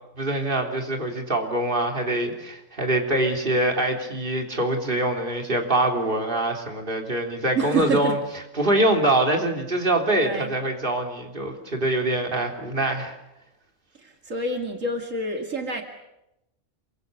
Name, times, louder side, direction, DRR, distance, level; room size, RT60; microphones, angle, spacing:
voice 1, 0.2-8.2 8.6-13.1, right 1 dB, 40° right, 2 dB, 3.6 m, -24 dB
voice 2, 7.6-8.2 10.2-10.5 13.9-15.8, right 3 dB, 80° right, 3 dB, 2.8 m, -27 dB
28.0 x 25.0 x 6.8 m, 0.88 s
omnidirectional pair, 1.3 m